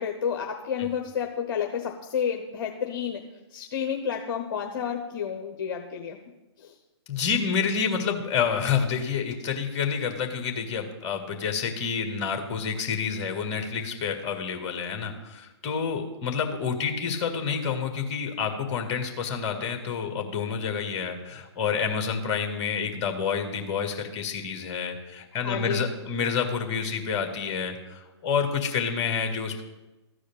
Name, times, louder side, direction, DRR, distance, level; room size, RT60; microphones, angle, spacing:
voice 1, 0.0-3.2 3.5-6.2 6.6-6.7 25.4-25.8, left 7 dB, 50° left, 2 dB, 1.1 m, -30 dB
voice 2, 7.1-29.6, left 6 dB, 30° left, 4 dB, 1.9 m, -28 dB
13.5 x 4.9 x 8.7 m, 1.1 s
figure-of-eight pair, 120°, 15 cm